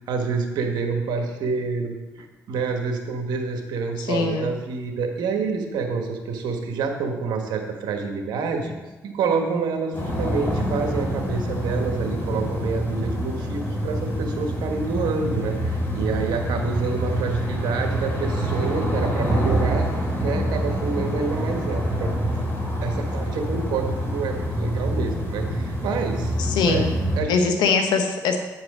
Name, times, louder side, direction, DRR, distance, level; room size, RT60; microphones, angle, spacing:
voice 1, 0.0-8.8 9.0-19.9 20.2-22.1 22.8-26.3 26.6-26.8 27.2-27.6, right 4 dB, 80° right, 3 dB, 1.3 m, -28 dB
voice 2, 4.0-4.5 26.4-26.9 27.3-28.4, left 5 dB, 85° left, 6 dB, 1.0 m, -22 dB
sound 1, 9.9-27.2, equal, 30° left, 3.4 m, -26 dB
8.7 x 4.7 x 6.2 m, 1.1 s
supercardioid pair, 65°, 7 cm